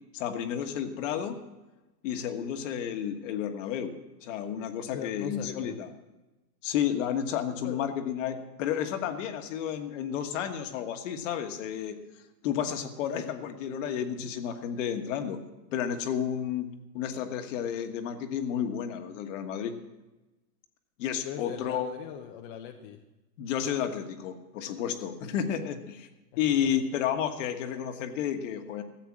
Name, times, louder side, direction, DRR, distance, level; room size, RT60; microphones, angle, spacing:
voice 1, 0.1-1.4 2.0-3.9 4.2-5.9 6.6-12.0 12.4-15.4 15.7-16.7 16.9-19.7 21.0-21.9 23.4-26.1 26.4-28.8, left 9 dB, 50° left, 7 dB, 1.5 m, -31 dB
voice 2, 4.9-5.8 7.6-7.8 21.2-23.0, left 9 dB, 35° left, 4 dB, 0.7 m, -40 dB
14.5 x 8.3 x 7.4 m, 1.1 s
supercardioid pair, 150°, 48 cm